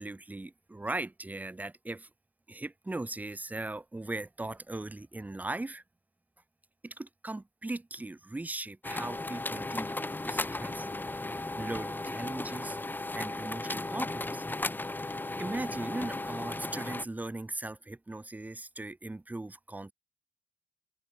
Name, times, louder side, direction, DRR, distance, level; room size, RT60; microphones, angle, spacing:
voice 1, 0.0-2.1 2.5-5.8 6.8-10.9 11.2-12.8 13.1-14.4 15.4-19.9, right 2 dB, 10° right, 1.0 m, -39 dB
sound 1, 8.8-17.0, left 2 dB, 10° left, 1.7 m, -35 dB
open air
cardioid pair, 110°, 17 cm